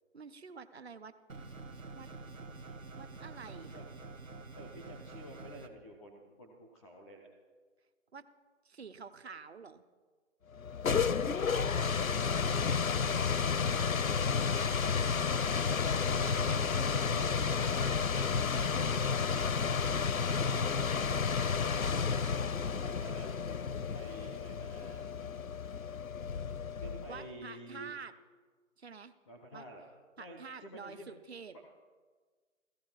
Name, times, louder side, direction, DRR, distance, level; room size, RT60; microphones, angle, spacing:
voice 1, 0.1-1.1 1.9-2.1 3.0-3.8 8.1-8.3 8.6-9.8 15.3-16.0 16.4-18.3 18.5-19.5 27.1-28.1 28.8-29.1 29.5-29.6 30.2-31.6, right 5 dB, 50° right, 12 dB, 0.9 m, -48 dB
sound 1, 1.3-5.7, right 3 dB, 80° right, 1.4 m, -47 dB
voice 2, 3.5-3.9 4.5-7.3 11.5-13.2 15.6-16.5 16.9-17.5 19.6-19.9 20.2-22.0 22.5-25.1 26.8-27.9 29.2-29.9 30.2-31.1 31.5-31.6, equal, ahead, 0 dB, 0.6 m, -50 dB
sound 2, 10.6-27.3, left 6 dB, 90° left, 0.7 m, -31 dB
16.5 x 14.5 x 5.9 m, 1.5 s
figure-of-eight pair, 145°, 40 cm